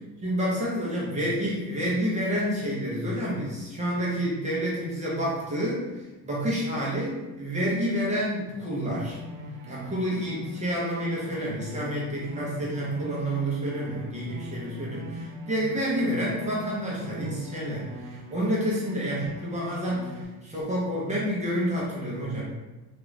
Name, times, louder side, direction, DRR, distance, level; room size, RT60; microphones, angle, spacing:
voice 1, 0.2-9.2 9.7-22.4, equal, 15° right, -6 dB, 0.8 m, -29 dB
sound 1, 8.9-20.2, equal, 90° right, 0.5 m, -41 dB
3.0 x 2.5 x 3.1 m, 1.1 s
cardioid pair, 150°, 40 cm